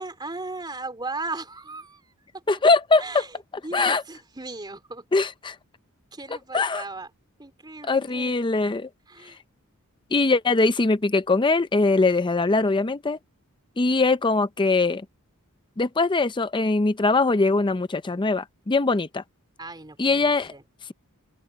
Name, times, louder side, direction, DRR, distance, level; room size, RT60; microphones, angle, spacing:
voice 1, 0.0-2.0 3.0-3.3 3.6-5.0 6.1-7.1 7.4-8.4 9.1-9.4 19.6-20.6, right 3 dB, 20° right, 3.3 m, -36 dB
voice 2, 2.5-3.3 3.7-4.0 5.1-5.6 6.3-6.9 7.8-8.9 9.2-9.3 10.1-13.2 13.8-15.1 15.8-19.2 20.0-20.5, left 3 dB, 20° left, 0.5 m, -22 dB
open air
head